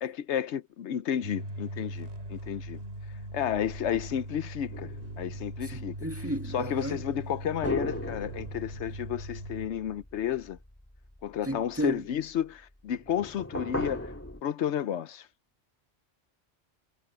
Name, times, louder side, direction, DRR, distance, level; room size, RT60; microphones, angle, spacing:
voice 1, 0.0-2.8 3.3-4.9 5.2-6.0 6.5-10.6 11.2-14.1 14.4-15.3, left 10 dB, 80° left, 1.0 m, -32 dB
sound 1, 1.2-9.7, right 1 dB, 65° right, 7.1 m, -40 dB
sound 2, 4.7-6.4 7.6-11.8 12.9-14.4, left 1 dB, 10° left, 2.4 m, -38 dB
voice 2, 5.7-7.0 11.5-12.0, right 1 dB, 10° right, 1.8 m, -33 dB
omnidirectional pair, 1.2 m